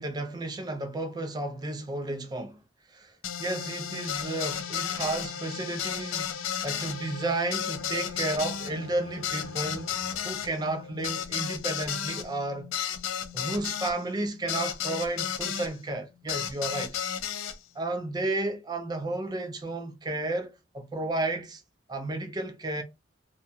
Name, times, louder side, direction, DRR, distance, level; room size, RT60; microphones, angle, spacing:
voice 1, 0.0-2.6 2.9-3.1 3.4-6.4 6.6-9.9 10.2-12.7 13.3-17.0 17.8-21.6 21.9-22.8, right 2 dB, 20° right, 0.4 m, -32 dB
sound 1, 3.2-15.7 16.3-17.6, left 8 dB, 90° left, 0.4 m, -33 dB
sound 2, 6.9-11.2, equal, 60° right, 0.8 m, -54 dB
2.4 x 2.1 x 2.7 m
head